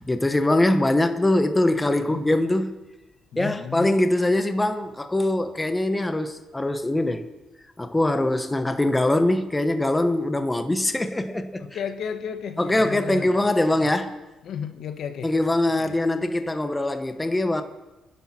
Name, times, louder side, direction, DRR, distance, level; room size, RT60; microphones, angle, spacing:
voice 1, 0.1-2.8 3.4-7.3 7.8-11.6 12.6-14.2 15.2-17.6, left 1 dB, 15° left, 1.1 m, -22 dB
voice 2, 1.8-2.2 3.3-3.9 11.6-13.3 13.7-13.9 14.4-15.3 15.7-16.0, left 7 dB, 70° left, 1.3 m, -34 dB
27.5 x 10.5 x 4.4 m
cardioid pair, 90°, 0 cm